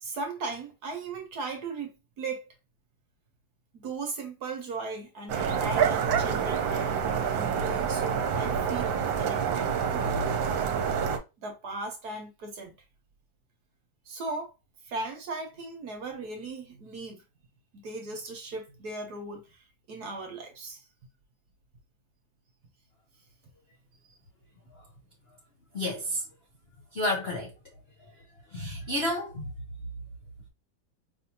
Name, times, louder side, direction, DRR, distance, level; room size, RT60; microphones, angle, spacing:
voice 1, 0.0-2.5 3.7-10.4 11.4-12.7 14.1-14.5 14.8-17.2 17.7-20.8, right 3 dB, 60° right, 1.3 m, -38 dB
sound 1, 5.3-11.2, right 7 dB, 75° right, 1.4 m, -27 dB
voice 2, 25.7-26.2 26.9-27.5 28.5-29.4, left 1 dB, 65° left, 0.6 m, -30 dB
5.1 x 2.7 x 2.8 m
omnidirectional pair, 2.2 m